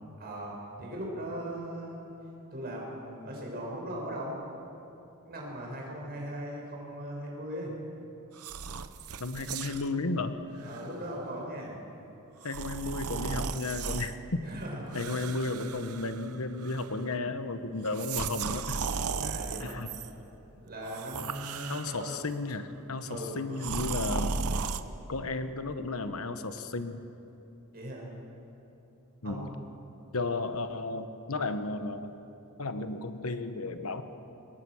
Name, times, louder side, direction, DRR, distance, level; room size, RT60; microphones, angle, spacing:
voice 1, 0.2-2.1 2.5-4.4 5.3-7.8 10.6-11.7 14.4-15.1 19.2-19.8 20.5-22.1 23.1-23.3 27.7-28.1 29.2-29.7, right 1 dB, 45° right, -2 dB, 6.5 m, -39 dB
sound 1, 8.4-9.9 10.6-10.8 12.4-14.1 14.9-16.4 16.6-17.1 17.9-20.1 20.8-22.2 23.6-24.8, right 5 dB, 85° right, 0.9 m, -35 dB
voice 2, 9.2-10.4 12.4-14.4 14.9-18.8 19.6-19.9 21.7-24.3 25.1-27.0 29.2-29.5 30.1-32.1 32.6-34.0, left 3 dB, 75° left, 9 dB, 1.2 m, -33 dB
24.5 x 21.5 x 6.4 m, 2.9 s
head